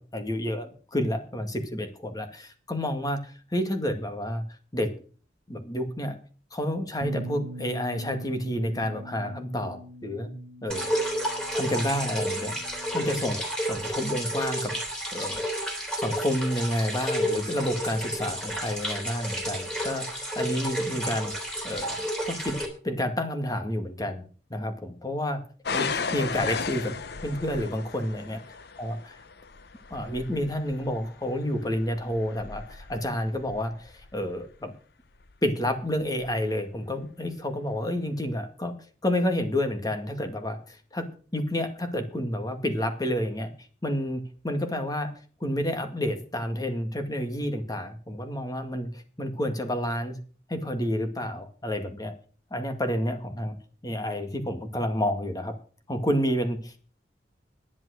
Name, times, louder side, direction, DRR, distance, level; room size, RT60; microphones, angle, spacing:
voice 1, 0.0-4.4 4.7-4.9 5.5-6.2 6.5-10.3 10.6-10.9 11.5-12.5 12.9-14.7 15.1-15.6 16.0-21.3 21.6-22.6 22.8-24.2 24.5-25.4 25.7-28.4 28.8-29.0 29.9-34.7 35.4-38.7 39.0-41.1 41.3-43.5 43.8-45.1 45.4-50.2 50.5-52.1 52.5-53.6 53.8-55.5 55.9-56.8, left 1 dB, 20° left, 7 dB, 2.0 m, -29 dB
Bass guitar, 7.0-13.3, right 1 dB, 85° right, 1.8 m, -43 dB
sound 1, 10.7-22.7, equal, 5° left, 3.6 m, -31 dB
sound 2, 25.7-34.5 35.2-35.6 36.2-36.3, left 5 dB, 60° left, 0.9 m, -36 dB
11.0 x 10.5 x 6.5 m, 0.40 s
head